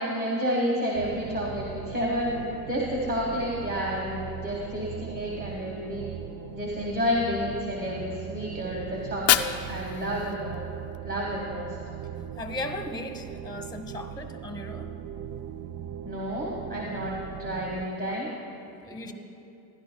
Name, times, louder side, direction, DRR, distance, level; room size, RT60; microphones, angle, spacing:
voice 1, 0.0-6.0 6.5-10.6 11.0-11.8 16.0-18.3 19.0-19.1, equal, 25° right, -3 dB, 1.6 m, -30 dB
sound 1, 0.9-17.9, right 9 dB, 50° right, 0.4 m, -40 dB
Fire, 9.0-11.0, left 10 dB, 40° left, 0.4 m, -28 dB
voice 2, 12.4-14.9 18.8-19.1, left 2 dB, 10° left, 5 dB, 1.0 m, -36 dB
16.5 x 11.0 x 2.3 m, 2.7 s
supercardioid pair, 80°, 38 cm